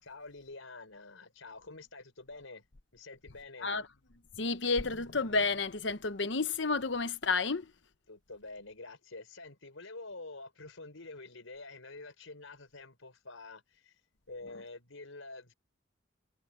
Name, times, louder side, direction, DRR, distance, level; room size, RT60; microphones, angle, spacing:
voice 1, 0.0-2.6 2.9-3.7 8.1-13.9 14.3-15.5, left 3 dB, 90° left, 5.1 m, -48 dB
voice 2, 4.4-7.7, left 4 dB, 65° left, 1.1 m, -31 dB
head